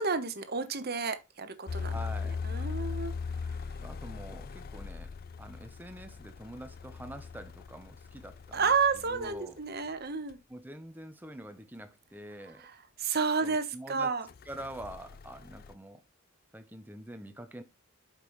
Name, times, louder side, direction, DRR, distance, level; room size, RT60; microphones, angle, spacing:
voice 1, 0.0-1.9 2.4-3.1 3.5-3.6 8.5-10.4 12.6-14.3, right 5 dB, 45° right, 1.1 m, -31 dB
sound 1, 1.7-9.4 10.3-10.4 14.3-15.7, left 5 dB, 40° left, 0.4 m, -39 dB
voice 2, 1.8-2.4 3.8-8.7 9.1-9.6 10.5-12.7 13.4-14.1 14.5-16.0 16.5-17.6, right 1 dB, 10° right, 0.8 m, -45 dB
8.0 x 5.4 x 3.1 m
head